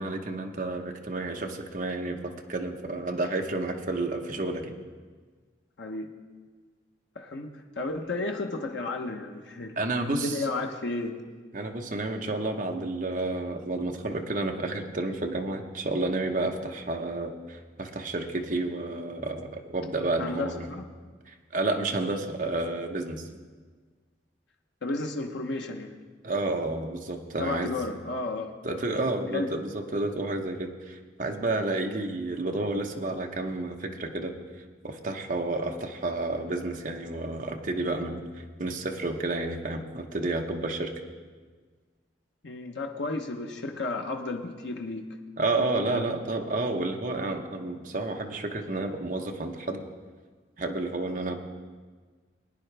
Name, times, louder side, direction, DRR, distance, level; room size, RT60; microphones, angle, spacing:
voice 1, 0.0-4.7 9.8-10.4 11.5-20.7 21.3-23.3 26.2-27.7 28.6-34.3 34.8-38.2 38.6-40.9 45.4-49.8 50.6-51.4, right 2 dB, 45° right, 3 dB, 1.0 m, -30 dB
voice 2, 5.8-6.1 7.1-9.7 10.1-11.1 20.2-20.8 24.8-26.0 27.4-28.5 29.3-29.5 31.8-31.9 42.4-45.1 45.9-46.1, left 2 dB, 70° left, 2 dB, 0.9 m, -33 dB
20.0 x 9.7 x 3.4 m, 1.5 s
head